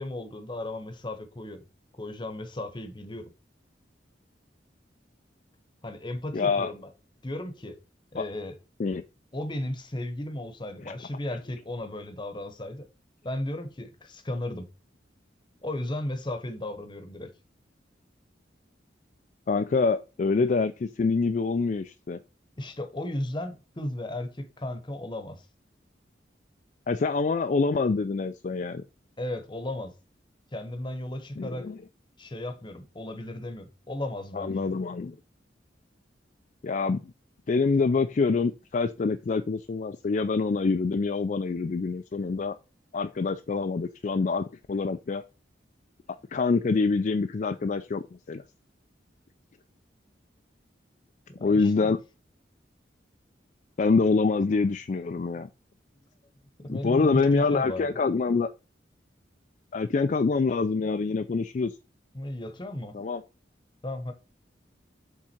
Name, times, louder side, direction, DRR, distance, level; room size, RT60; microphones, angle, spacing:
voice 1, 0.0-1.6 2.0-3.3 5.8-6.9 7.2-7.8 8.1-8.6 9.3-12.9 13.2-14.7 15.6-17.3 22.6-25.4 29.2-29.9 30.5-31.7 32.2-34.7 51.4-51.9 54.9-55.0 56.6-57.9 62.1-62.9 63.8-64.1, left 1 dB, 25° left, 0.9 m, -35 dB
voice 2, 6.3-6.7 8.2-8.3 8.8-9.0 10.8-10.9 19.5-22.2 26.9-28.8 31.4-31.8 34.3-35.2 36.6-37.1 37.5-42.6 42.9-45.2 46.3-48.4 51.4-52.0 53.8-55.5 56.7-58.5 59.7-61.7 62.9-63.2, left 4 dB, 45° left, 0.4 m, -26 dB
7.3 x 3.7 x 4.3 m
head